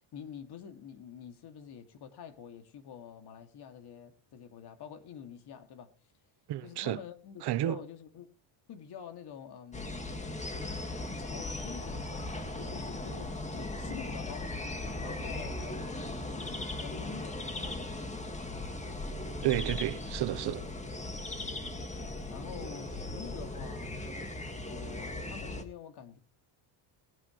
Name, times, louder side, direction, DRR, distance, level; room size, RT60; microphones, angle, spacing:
voice 1, 0.1-5.9 6.6-8.3 8.7-10.1 11.2-14.5 15.0-18.0 21.4-21.5 22.3-24.4 24.7-26.2, left 8 dB, 50° left, 2.5 m, -47 dB
voice 2, 6.5-7.0 7.4-7.8 19.4-20.7, right 14 dB, 55° right, 0.9 m, -31 dB
sound 1, 9.7-25.6, left 2 dB, 15° left, 1.8 m, -38 dB
21.0 x 9.9 x 3.2 m
cardioid pair, 145°, 49 cm